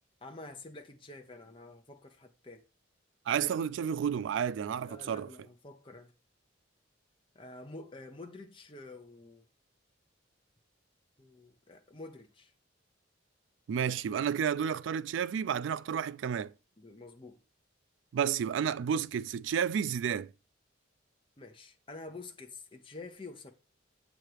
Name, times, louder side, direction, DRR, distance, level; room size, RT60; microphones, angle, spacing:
voice 1, 0.2-2.6 4.9-6.1 7.3-9.5 11.2-12.5 16.8-17.4 21.4-23.5, left 3 dB, 25° left, 0.7 m, -48 dB
voice 2, 3.3-5.3 13.7-16.5 18.1-20.3, right 8 dB, 75° right, 0.3 m, -31 dB
7.5 x 3.0 x 4.9 m
head